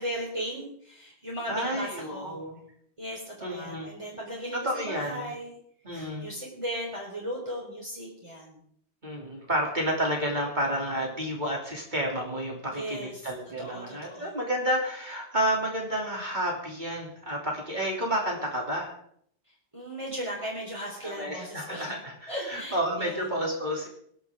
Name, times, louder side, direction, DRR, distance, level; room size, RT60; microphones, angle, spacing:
voice 1, 0.0-2.3 3.0-5.5 5.9-8.6 12.7-13.1 13.6-14.3 19.7-21.9 22.3-23.3, equal, 25° right, -4 dB, 4.4 m, -37 dB
voice 2, 1.5-2.6 3.4-3.9 4.6-5.3 5.8-6.3 9.0-18.9 21.0-23.9, equal, 40° right, -1 dB, 3.4 m, -30 dB
23.5 x 11.5 x 3.8 m, 0.65 s
omnidirectional pair, 1.2 m